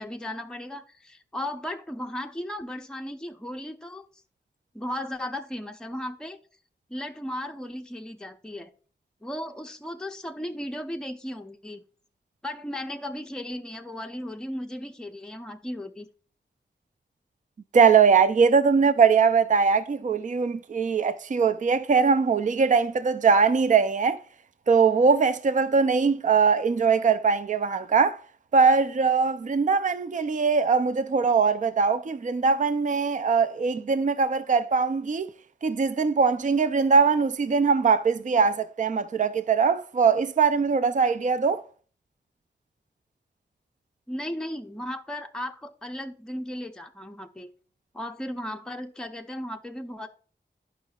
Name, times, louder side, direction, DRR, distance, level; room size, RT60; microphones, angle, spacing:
voice 1, 0.0-4.1 4.7-6.4 6.9-8.7 9.2-11.8 12.4-16.1 44.1-47.5 47.9-50.1, left 1 dB, 5° left, 0.6 m, -35 dB
voice 2, 17.7-24.2 24.7-28.2 28.5-35.3 35.6-41.6, right 5 dB, 45° right, 0.4 m, -21 dB
11.5 x 5.5 x 2.3 m
wide cardioid pair, 85°, 19 cm